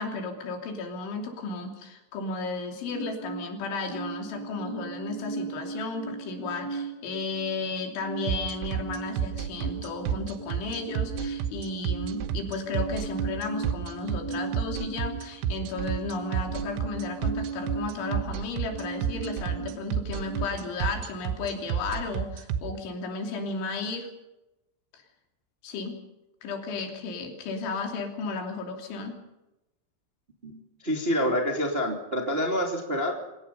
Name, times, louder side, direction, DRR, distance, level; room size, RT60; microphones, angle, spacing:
voice 1, 0.0-24.1 24.9-25.0 25.6-26.0 26.4-29.2, left 3 dB, 75° left, 3 dB, 5.4 m, -34 dB
sound 1, 2.9-20.4, right 4 dB, 35° left, 0.4 m, -38 dB
sound 2, 8.3-22.6, right 9 dB, 80° right, 3.5 m, -29 dB
voice 2, 30.8-33.1, equal, 20° right, 1 dB, 1.9 m, -27 dB
27.0 x 17.5 x 5.6 m, 0.97 s
omnidirectional pair, 5.5 m